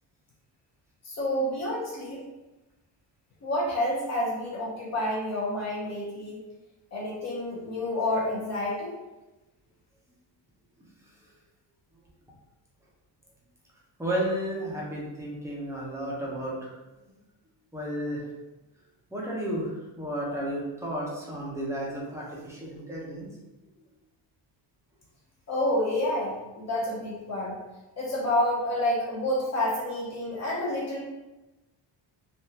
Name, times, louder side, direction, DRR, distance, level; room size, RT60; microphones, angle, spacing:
voice 1, 1.0-2.2 3.4-6.4 6.9-9.0 25.5-27.6 28.0-31.0, left 1 dB, 35° left, -5 dB, 0.6 m, -29 dB
voice 2, 14.0-16.8 17.7-18.3 19.1-19.7 20.0-23.3, right 1 dB, 5° right, -5 dB, 0.5 m, -32 dB
3.4 x 2.3 x 2.7 m, 1.0 s
cardioid pair, 175°, 44 cm